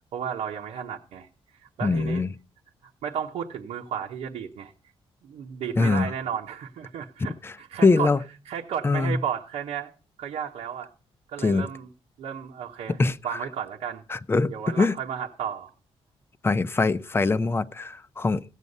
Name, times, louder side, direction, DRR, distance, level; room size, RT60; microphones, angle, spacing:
voice 1, 0.1-1.3 1.6-2.2 3.0-4.7 5.2-8.1 8.4-9.9 10.2-10.9 11.3-11.9 12.2-13.0 13.2-14.0 14.5-15.7, right 8 dB, 90° right, 1.1 m, -33 dB
voice 2, 1.8-2.3 5.8-6.1 7.4-7.5 7.8-8.2 8.8-9.2 11.4-11.7 13.0-13.2 14.1-15.0 16.4-18.4, left 3 dB, 20° left, 0.6 m, -22 dB
16.0 x 8.3 x 5.4 m
cardioid pair, 125°, 10 cm